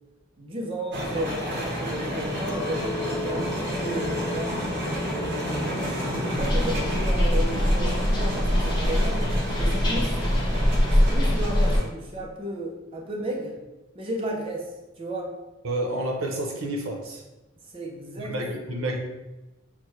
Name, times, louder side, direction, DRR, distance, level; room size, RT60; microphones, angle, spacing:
voice 1, 0.4-4.6 5.0-9.2 9.6-10.3 10.6-13.6 13.9-15.3 17.6-18.3, right 1 dB, 25° right, -2 dB, 0.5 m, -34 dB
sound 1, 0.9-11.8, equal, 55° right, 1.2 m, -30 dB
Chink clink, 2.5-7.9, left 3 dB, 85° left, 0.4 m, -39 dB
sound 2, 6.4-11.8, equal, 20° left, 0.6 m, -23 dB
voice 2, 15.6-17.2 18.2-19.0, right 1 dB, 85° right, 1 dB, 0.8 m, -29 dB
5.7 x 2.2 x 3.1 m, 1.1 s
head